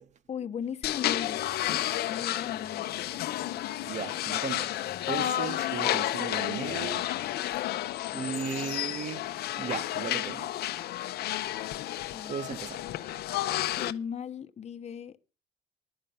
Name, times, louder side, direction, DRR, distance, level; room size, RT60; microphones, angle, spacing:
voice 1, 0.3-2.9 12.1-12.3 13.7-15.2, left 7 dB, 40° left, 1.0 m, -38 dB
sound 1, 0.8-13.9, left 14 dB, 70° left, 0.8 m, -31 dB
voice 2, 3.8-7.1 8.1-10.5 12.3-12.8, right 7 dB, 45° right, 0.8 m, -37 dB
11.5 x 5.4 x 8.7 m
cardioid pair, 110°, 17 cm